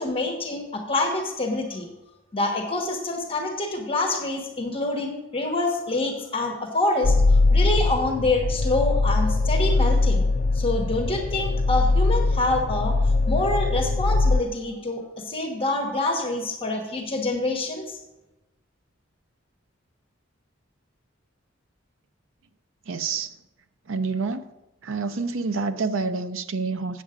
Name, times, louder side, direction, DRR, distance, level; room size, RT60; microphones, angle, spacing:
voice 1, 0.0-1.9 2.3-7.2 7.5-10.2 10.5-12.9 13.3-18.0, left 2 dB, 30° left, 1.2 m, -26 dB
sound 1, 7.0-14.4, left 3 dB, 45° left, 0.4 m, -21 dB
voice 2, 22.9-23.3 23.9-24.4 24.8-27.0, right 4 dB, 90° right, 0.6 m, -27 dB
8.4 x 7.4 x 4.9 m
head